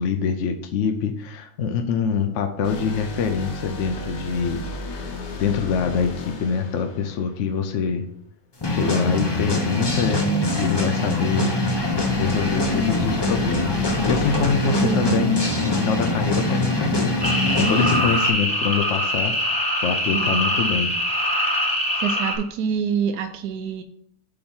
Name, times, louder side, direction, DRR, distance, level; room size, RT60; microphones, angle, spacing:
voice 1, 0.0-8.1 8.7-11.6 12.2-19.5 19.8-20.9, left 6 dB, 65° left, 6 dB, 0.8 m, -25 dB
sound 1, 2.6-8.1 11.6-16.4, left 2 dB, 80° left, 1.7 m, -35 dB
sound 2, 8.6-18.3, left 2 dB, 30° left, 0.4 m, -23 dB
voice 2, 14.6-15.4 20.1-20.4 22.0-23.8, right 7 dB, 75° right, 7 dB, 1.1 m, -26 dB
sound 3, 17.2-22.4, left 1 dB, 5° left, 1.0 m, -23 dB
8.6 x 3.0 x 5.4 m, 0.69 s
omnidirectional pair, 1.8 m